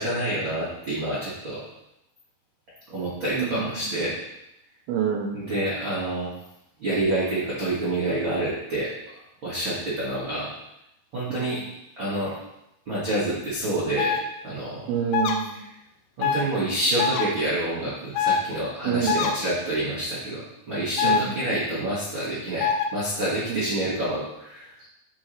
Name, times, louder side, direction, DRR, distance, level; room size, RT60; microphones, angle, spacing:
voice 1, 0.0-1.6 2.9-4.1 5.3-6.3 6.8-8.9 9.4-10.5 11.1-11.6 12.0-12.4 12.8-14.2 14.4-14.9 16.2-24.9, right 1 dB, 55° right, -9 dB, 1.3 m, -28 dB
voice 2, 3.3-3.9 4.9-5.4 11.4-11.5 14.9-15.6 18.9-19.2 21.0-21.4 23.5-23.7, right 8 dB, 85° right, 0 dB, 2.2 m, -27 dB
sound 1, 14.0-14.2 15.1-15.3 16.2-16.4 17.0-17.3 18.1-18.4 19.1-19.3 21.0-21.2 22.6-22.9, left 7 dB, 80° left, 2.6 m, -23 dB
11.0 x 4.2 x 3.2 m, 0.83 s
omnidirectional pair, 5.2 m